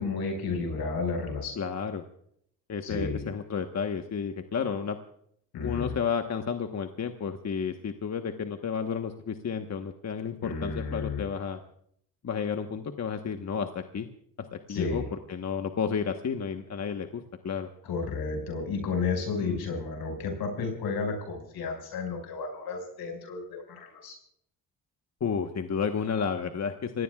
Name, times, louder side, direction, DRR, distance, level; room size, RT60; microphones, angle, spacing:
voice 1, 0.0-1.6 2.8-3.2 5.5-5.9 10.4-11.2 14.7-15.1 17.8-24.1, left 4 dB, 85° left, 3 dB, 5.7 m, -32 dB
voice 2, 1.6-2.0 2.7-5.0 5.6-11.6 12.2-13.7 13.9-14.1 14.7-17.7 19.4-19.7 25.2-27.0, left 6 dB, 50° left, 6 dB, 1.3 m, -31 dB
27.5 x 17.5 x 2.4 m, 0.67 s
cardioid pair, 70°, 36 cm